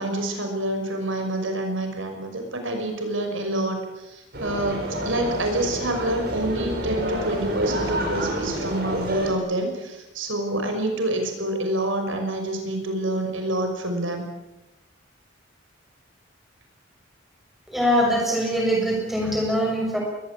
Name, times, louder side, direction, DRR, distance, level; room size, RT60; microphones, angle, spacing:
voice 1, 0.0-14.3, right 1 dB, 70° right, 5 dB, 6.0 m, -27 dB
sound 1, 4.3-9.3, right 1 dB, 50° right, 6.1 m, -29 dB
voice 2, 17.7-20.0, equal, ahead, 0 dB, 6.7 m, -22 dB
21.5 x 20.0 x 8.7 m, 1.0 s
head